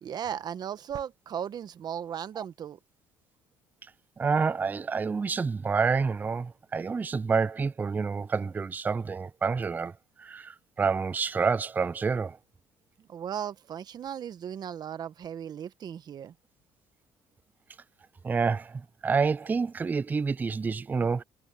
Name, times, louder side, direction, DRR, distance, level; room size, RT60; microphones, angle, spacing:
voice 1, 0.0-2.8 13.1-16.3, right 9 dB, 50° right, 1.3 m, -36 dB
voice 2, 4.2-9.9 10.2-12.4 18.2-21.2, right 5 dB, 20° right, 0.3 m, -28 dB
supercardioid pair, 85°, 9 cm